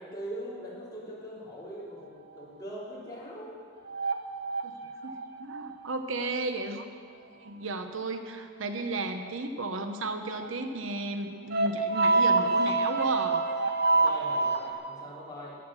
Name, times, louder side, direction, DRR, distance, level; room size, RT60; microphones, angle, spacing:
voice 1, 0.0-3.6 13.9-15.6, equal, 20° left, -8 dB, 3.4 m, -41 dB
sound 1, 3.9-5.9 8.8-8.9 10.3-10.5 10.9-11.0 11.5-14.7, right 3 dB, 50° right, 1.0 m, -26 dB
voice 2, 5.0-6.8 7.4-13.4, right 2 dB, 75° right, 7 dB, 0.9 m, -34 dB
13.5 x 9.3 x 6.3 m, 2.2 s
head